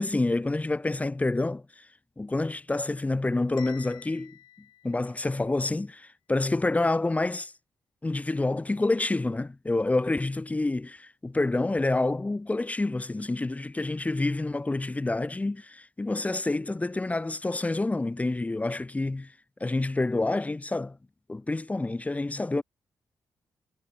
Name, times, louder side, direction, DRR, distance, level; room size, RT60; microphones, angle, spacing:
voice 1, 0.0-1.9 2.2-4.4 4.8-7.5 8.0-19.3 19.6-21.0 21.3-22.6, left 2 dB, 20° left, 0.6 m, -28 dB
Bell, 3.6-5.6, left 13 dB, 80° left, 7.5 m, -51 dB
supercardioid pair, 45°, 8 cm